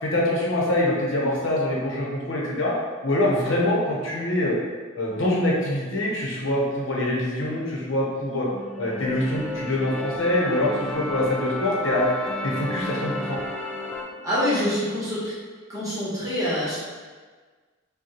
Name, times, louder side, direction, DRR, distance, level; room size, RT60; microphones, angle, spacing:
voice 1, 0.0-2.7 3.0-4.5 4.9-8.5 8.8-12.1 12.4-13.4, left 1 dB, 65° left, -4 dB, 0.9 m, -24 dB
sound 1, 8.5-14.0, left 2 dB, 5° left, 0.3 m, -32 dB
sound 2, 9.3-14.3, right 1 dB, 40° left, 0.9 m, -41 dB
voice 2, 14.2-15.3 15.7-16.8, equal, 15° right, -10 dB, 1.1 m, -25 dB
5.2 x 2.3 x 3.0 m, 1.4 s
head